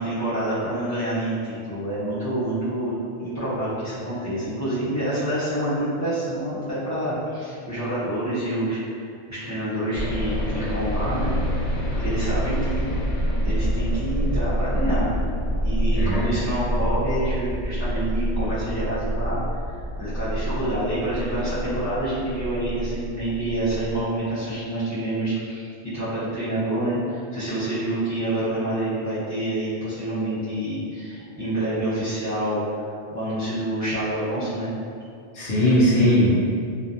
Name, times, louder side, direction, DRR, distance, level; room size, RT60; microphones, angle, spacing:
voice 1, 0.0-8.8 9.3-11.3 11.9-13.0 13.4-15.1 15.6-19.4 20.0-27.0 27.3-34.7, right 1 dB, 20° right, -14 dB, 0.7 m, -27 dB
sound 1, 9.9-24.0, equal, 55° left, 0.5 m, -27 dB
voice 2, 15.9-16.3 35.3-36.3, equal, 70° left, -8 dB, 0.8 m, -19 dB
2.3 x 2.0 x 2.6 m, 2.3 s
omnidirectional pair, 1.1 m